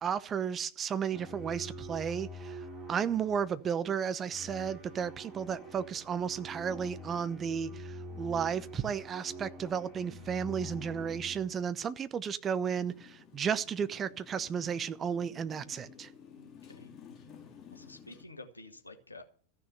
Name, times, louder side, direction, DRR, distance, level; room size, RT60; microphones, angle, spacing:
voice 1, 0.0-16.1, right 7 dB, 25° right, 0.8 m, -33 dB
sound 1, 1.1-11.7, equal, 5° right, 5.0 m, -45 dB
Motorcycle, 12.8-18.3, left 7 dB, 30° left, 2.2 m, -54 dB
voice 2, 16.4-16.9 17.7-19.2, left 2 dB, 80° left, 1.7 m, -50 dB
14.5 x 6.5 x 9.3 m
figure-of-eight pair, 90°, 0 cm